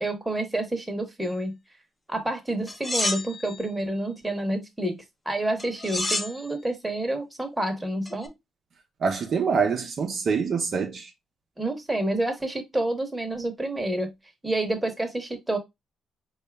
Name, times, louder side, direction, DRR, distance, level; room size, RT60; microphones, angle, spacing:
voice 1, 0.0-1.5 2.1-5.0 5.3-8.3 11.6-14.1 14.4-15.6, right 1 dB, 10° right, 1.0 m, -28 dB
sound 1, 2.7-3.6 5.6-6.4 8.1-8.3, left 2 dB, 20° left, 0.7 m, -29 dB
voice 2, 9.0-11.1, right 5 dB, 55° right, 0.6 m, -25 dB
4.2 x 2.3 x 3.3 m
cardioid pair, 90°, 0 cm